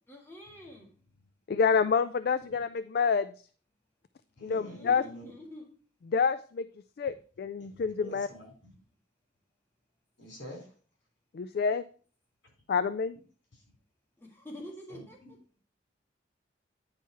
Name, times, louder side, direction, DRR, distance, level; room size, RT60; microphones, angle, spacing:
voice 1, 0.1-0.9 4.5-5.7 14.2-15.4, left 1 dB, 15° left, -2 dB, 1.8 m, -47 dB
voice 2, 1.5-3.3 4.4-5.0 6.1-6.7 7.0-8.3 11.3-11.8 12.7-13.2, left 5 dB, 55° left, 13 dB, 0.3 m, -28 dB
voice 3, 4.4-5.3 7.6-8.7 10.2-10.7 14.9-15.3, equal, 80° left, 0 dB, 4.3 m, -48 dB
9.5 x 4.6 x 4.5 m, 0.41 s
head